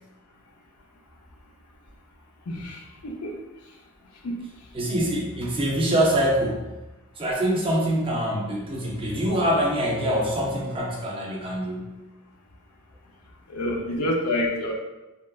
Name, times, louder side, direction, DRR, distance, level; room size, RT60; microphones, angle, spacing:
voice 1, 2.5-3.3 4.2-4.4 13.5-14.7, left 1 dB, 80° left, 0 dB, 0.5 m, -28 dB
voice 2, 4.7-6.7 7.2-11.9, equal, 25° right, -2 dB, 0.4 m, -24 dB
2.9 x 2.1 x 2.3 m, 1.0 s
head